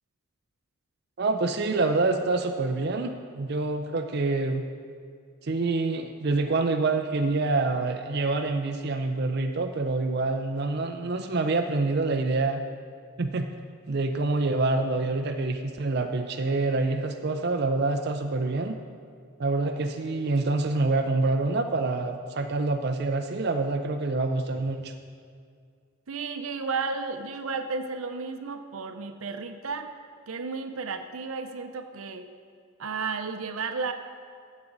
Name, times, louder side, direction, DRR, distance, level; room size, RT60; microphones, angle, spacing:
voice 1, 1.2-4.6 5.4-12.6 13.2-13.5 13.9-18.8 19.4-24.9, right 3 dB, 50° right, 5 dB, 0.5 m, -26 dB
voice 2, 26.1-29.9 30.3-32.3 32.8-33.9, right 4 dB, 85° right, 8 dB, 0.7 m, -33 dB
14.5 x 7.3 x 4.0 m, 2.1 s
head